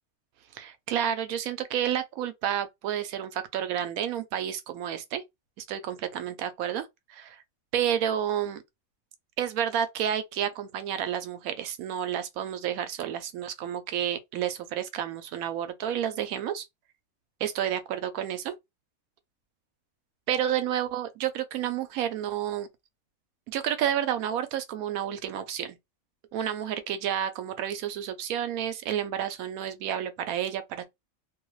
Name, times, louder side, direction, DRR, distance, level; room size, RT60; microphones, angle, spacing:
voice 1, 0.5-5.2 5.6-7.4 7.7-8.6 9.4-16.6 17.4-18.5 20.3-22.7 23.5-25.8 26.3-30.8, right 10 dB, 85° right, 1.0 m, -30 dB
2.6 x 2.3 x 3.0 m
omnidirectional pair, 1.5 m